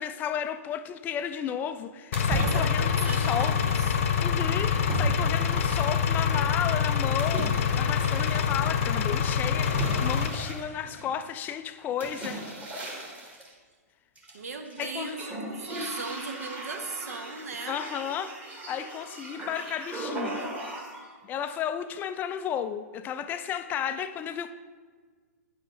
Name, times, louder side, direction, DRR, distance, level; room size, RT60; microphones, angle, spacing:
voice 1, 0.0-3.6 4.2-12.6 14.8-15.2 17.7-20.4 21.2-24.5, left 9 dB, 20° left, 11 dB, 0.3 m, -33 dB
Engine, 2.1-10.3, left 7 dB, 50° left, 0.7 m, -26 dB
sound 1, 2.1-3.9 4.9-6.2 7.2-8.6 9.6-11.3 12.0-13.5 14.2-14.8 15.1-21.1, right 2 dB, 15° right, 1.6 m, -36 dB
voice 2, 2.3-4.0 14.3-17.8, right 4 dB, 65° right, 6 dB, 1.1 m, -37 dB
9.5 x 7.2 x 3.4 m, 1.5 s
figure-of-eight pair, 120°, 9 cm